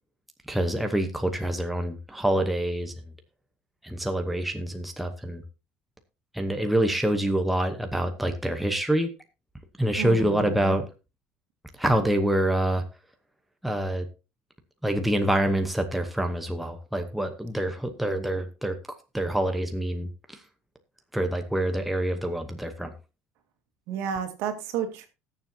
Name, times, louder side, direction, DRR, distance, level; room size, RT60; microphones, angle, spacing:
voice 1, 0.5-2.9 3.8-5.4 6.3-9.1 9.8-10.8 11.8-12.8 13.6-14.1 14.8-18.7 19.1-20.4 21.1-22.9, right 1 dB, ahead, 5 dB, 0.9 m, -26 dB
voice 2, 10.0-10.8 23.9-25.1, right 8 dB, 65° right, 6 dB, 2.2 m, -31 dB
19.5 x 7.3 x 2.8 m, 0.29 s
cardioid pair, 155°, 5 cm